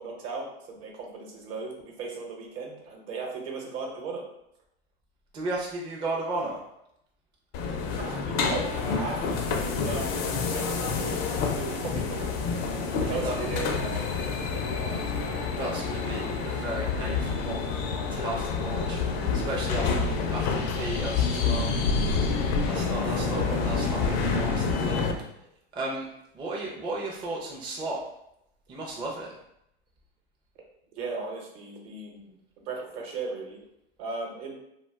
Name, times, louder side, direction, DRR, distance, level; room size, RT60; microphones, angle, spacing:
voice 1, 0.0-4.2 8.0-12.7 13.1-14.9 15.2-15.4 23.0-23.6 30.9-32.4 32.6-33.6 34.0-34.5, right 4 dB, 60° right, 0 dB, 1.0 m, -37 dB
voice 2, 5.3-6.6 10.6-11.4 13.0-13.4 15.6-17.7 18.1-19.0 19.3-21.7 22.6-25.1 25.7-26.1 26.3-28.0 28.7-29.3, right 2 dB, 15° right, -3 dB, 0.4 m, -35 dB
sound 1, 7.5-25.1, left 5 dB, 45° left, 0.5 m, -28 dB
2.3 x 2.3 x 3.4 m, 0.79 s
hypercardioid pair, 105°, 32 cm